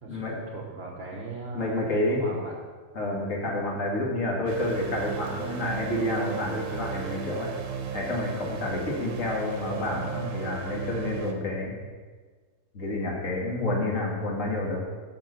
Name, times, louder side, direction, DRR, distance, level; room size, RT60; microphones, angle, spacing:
voice 1, 0.0-1.8 2.1-2.6, right 3 dB, 45° right, -1 dB, 1.0 m, -39 dB
voice 2, 1.5-2.2 3.0-7.5 7.9-11.7 12.7-14.8, left 1 dB, 50° left, -2 dB, 2.0 m, -29 dB
sound 1, 4.5-11.3, right 7 dB, 75° right, 1.4 m, -35 dB
6.3 x 5.9 x 6.8 m, 1.5 s
omnidirectional pair, 1.8 m